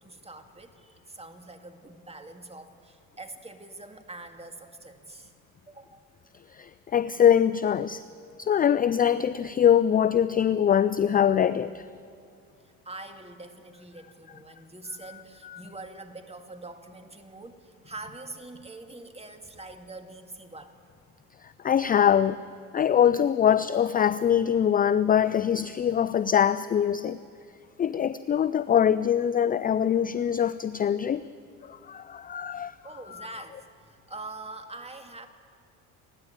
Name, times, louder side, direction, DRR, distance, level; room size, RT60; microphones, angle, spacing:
voice 1, 0.0-5.3 5.7-6.1 12.6-20.8 32.5-35.3, right 2 dB, 15° right, 7 dB, 2.1 m, -44 dB
voice 2, 6.5-8.0 8.4-11.8 15.4-15.6 21.4-22.4 22.7-27.2 27.8-31.2 31.6-32.8 33.1-33.3, left 9 dB, 20° left, 15 dB, 0.4 m, -23 dB
29.0 x 10.5 x 8.8 m, 2.3 s
hypercardioid pair, 75°, 43 cm